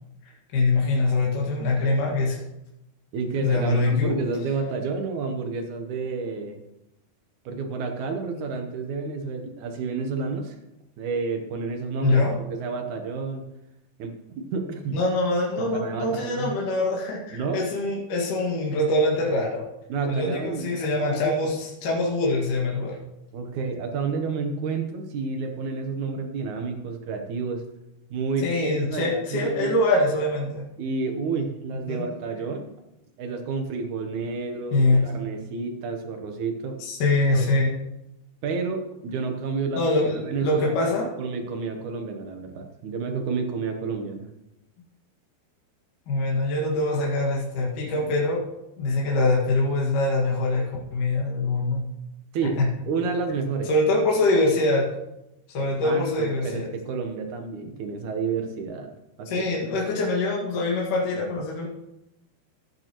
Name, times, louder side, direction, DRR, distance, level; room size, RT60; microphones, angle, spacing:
voice 1, 0.5-2.4 3.4-4.1 8.3-8.4 12.0-12.4 14.9-19.7 20.1-23.0 28.4-30.7 31.9-32.1 34.7-35.1 36.8-37.7 39.8-41.1 46.1-48.4 48.8-50.6 50.9-51.8 52.6-52.7 53.6-54.9 55.5-56.7 59.3-61.7, left 2 dB, 55° left, -4 dB, 3.2 m, -24 dB
voice 2, 3.1-6.6 7.5-10.6 11.0-13.4 14.0-15.0 15.6-16.5 17.3-17.6 19.9-21.5 23.3-27.6 28.1-29.7 30.8-32.7 33.2-36.8 37.3-37.5 38.4-39.8 40.2-40.9 41.2-44.3 52.3-52.6 52.9-53.7 55.6-58.9 59.2-59.5, right 4 dB, 70° right, 5 dB, 1.9 m, -30 dB
15.5 x 9.1 x 3.0 m, 0.89 s
omnidirectional pair, 4.7 m